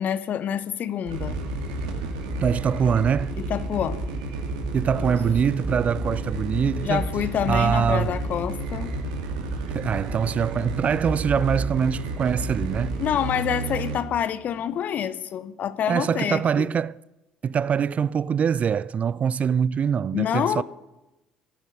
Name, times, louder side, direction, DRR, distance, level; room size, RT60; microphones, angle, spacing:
voice 1, 0.0-1.4 3.5-4.0 5.0-5.2 6.8-8.9 13.0-16.7 20.1-20.6, left 9 dB, 55° left, 1.0 m, -27 dB
sound 1, 1.1-14.0, right 2 dB, 75° right, 2.2 m, -30 dB
voice 2, 2.4-3.4 4.7-7.1 7.5-8.2 9.7-13.0 15.9-17.0 17.4-20.6, right 7 dB, 40° right, 0.4 m, -24 dB
16.0 x 9.9 x 6.6 m
hypercardioid pair, 55°, 3 cm